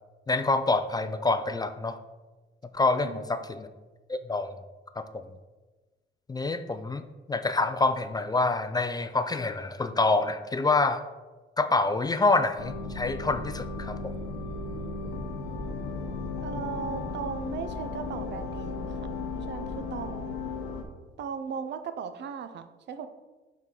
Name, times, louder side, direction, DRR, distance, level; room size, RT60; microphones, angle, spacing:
voice 1, 0.3-2.0 2.7-3.7 4.1-4.6 5.0-5.2 6.3-7.0 7.3-11.0 11.6-14.2, left 3 dB, 20° left, 10 dB, 0.3 m, -26 dB
sound 1, 12.6-20.8, left 3 dB, 90° left, 0.8 m, -35 dB
voice 2, 16.4-19.1 19.4-20.4 21.2-23.1, right 7 dB, 60° right, 10 dB, 0.5 m, -37 dB
6.2 x 4.1 x 3.8 m, 1.2 s
cardioid pair, 90°, 20 cm